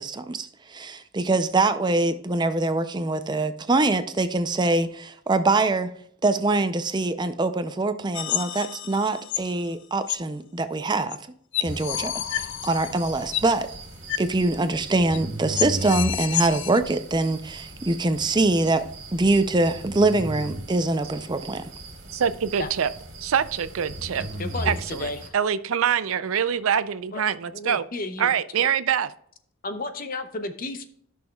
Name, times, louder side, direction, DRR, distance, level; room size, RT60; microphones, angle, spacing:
voice 1, 0.0-5.9 6.2-11.2 11.6-13.7 14.2-18.8 19.1-21.6, right 2 dB, 20° right, 10 dB, 0.5 m, -24 dB
sound 1, 8.1-9.5 10.1-10.2 11.1-11.2 11.5-13.5 14.1-14.3 14.6-14.7 15.1-15.2 15.6-16.8, left 13 dB, 55° left, 0.4 m, -30 dB
sound 2, 11.6-25.3, right 1 dB, 55° right, 2.2 m, -37 dB
voice 2, 22.1-22.9 23.2-24.2 24.7-27.8 28.2-29.1, right 8 dB, 75° right, 14 dB, 0.5 m, -24 dB
voice 3, 24.2-25.3 27.1-28.3 28.6-28.7 29.6-30.9, left 2 dB, 40° left, 8 dB, 0.8 m, -33 dB
14.0 x 6.2 x 2.3 m, 0.64 s
head